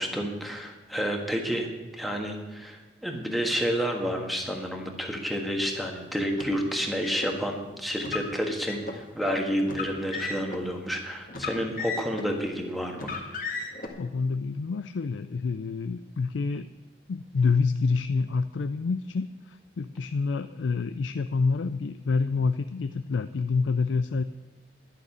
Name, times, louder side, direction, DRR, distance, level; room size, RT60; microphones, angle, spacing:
voice 1, 0.0-1.7 1.9-13.1, equal, ahead, 1 dB, 1.5 m, -30 dB
Car, 6.3-7.3 8.0-9.0 9.6-10.6 11.3-12.4 12.9-13.9, left 4 dB, 50° left, 1.8 m, -35 dB
voice 2, 14.0-16.7 17.1-24.2, left 4 dB, 90° left, 11 dB, 0.4 m, -27 dB
11.5 x 6.7 x 9.7 m, 1.1 s
head